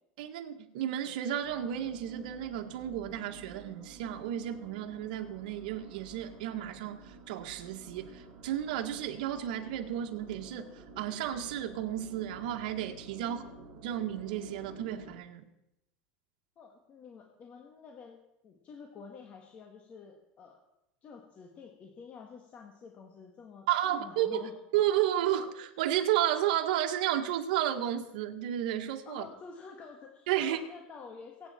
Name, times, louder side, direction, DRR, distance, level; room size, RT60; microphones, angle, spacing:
voice 1, 0.2-13.4 13.8-15.4 23.7-29.2 30.3-30.6, right 11 dB, 75° right, 4 dB, 1.7 m, -32 dB
sound 1, 1.4-15.2, right 3 dB, 45° right, 4.5 m, -51 dB
voice 2, 13.2-13.7 16.6-18.2 18.4-20.6 21.0-24.6 29.1-31.5, left 5 dB, 30° left, 2 dB, 1.8 m, -49 dB
23.5 x 8.7 x 4.5 m, 0.84 s
supercardioid pair, 140°, 5 cm